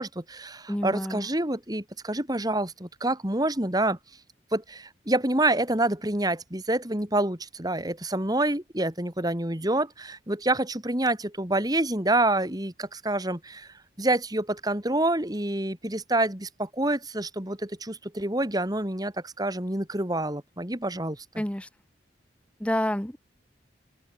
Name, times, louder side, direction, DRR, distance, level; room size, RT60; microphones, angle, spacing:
voice 1, 0.0-4.0 4.5-13.7 14.0-21.4, right 1 dB, 20° right, 3.0 m, -27 dB
voice 2, 0.7-1.3 21.4-21.7 22.6-23.2, left 1 dB, 5° left, 0.9 m, -28 dB
open air
head